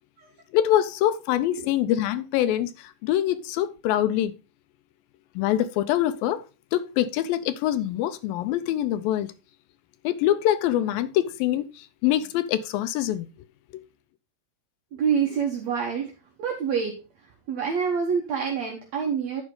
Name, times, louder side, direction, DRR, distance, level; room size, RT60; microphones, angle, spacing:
voice 1, 0.5-4.3 5.4-6.4 6.7-9.3 10.0-13.3 13.7-13.8, left 12 dB, 90° left, 2.5 m, -24 dB
voice 2, 14.9-16.1 16.4-17.0 17.5-19.4, right 6 dB, 60° right, 2.0 m, -26 dB
11.0 x 5.3 x 3.8 m
omnidirectional pair, 4.0 m